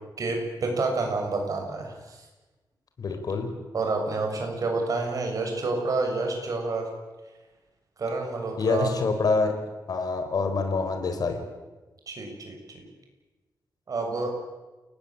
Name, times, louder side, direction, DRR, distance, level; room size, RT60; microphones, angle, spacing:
voice 1, 0.2-2.2 3.7-6.9 8.0-8.9 12.1-12.8 13.9-14.3, right 3 dB, 50° right, 3 dB, 6.9 m, -29 dB
voice 2, 3.0-3.5 8.6-9.5 9.9-11.4, left 4 dB, 60° left, 6 dB, 4.5 m, -26 dB
29.0 x 20.0 x 8.9 m, 1.2 s
wide cardioid pair, 160°, 7 cm